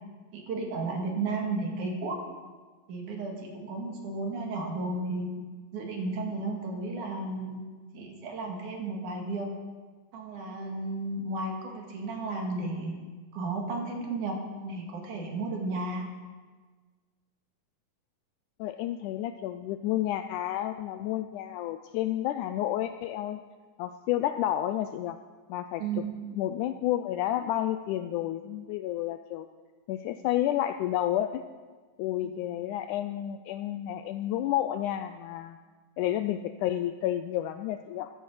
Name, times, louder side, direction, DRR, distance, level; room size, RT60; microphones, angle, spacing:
voice 1, 0.3-2.2 2.9-5.3 5.7-7.6 7.9-9.5 10.1-12.9 13.3-16.1 25.8-26.0, right 3 dB, 65° right, 1 dB, 3.2 m, -33 dB
voice 2, 18.6-23.4 23.8-25.2 25.5-26.0 26.3-29.5 29.9-31.4 32.0-35.6 36.0-38.1, left 12 dB, 80° left, 9 dB, 1.8 m, -30 dB
12.5 x 9.3 x 7.5 m, 1.4 s
omnidirectional pair, 3.9 m